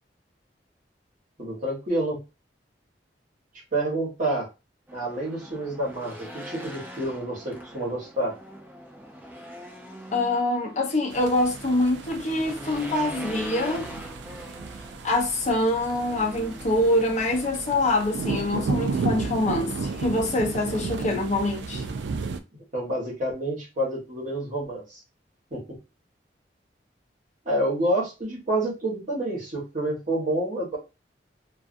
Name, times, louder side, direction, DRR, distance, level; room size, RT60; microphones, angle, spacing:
voice 1, 1.4-2.2 3.7-4.5 4.9-8.3 22.7-25.0 25.5-25.6 27.4-30.8, right 1 dB, 45° right, 1.1 m, -28 dB
Race car auto racing / Engine, 4.9-18.5, equal, 10° right, 0.5 m, -42 dB
voice 2, 10.1-13.9 15.0-21.8, left 1 dB, 40° left, 0.7 m, -25 dB
sound 1, 11.1-22.4, right 4 dB, 75° right, 0.3 m, -33 dB
2.4 x 2.3 x 2.5 m
head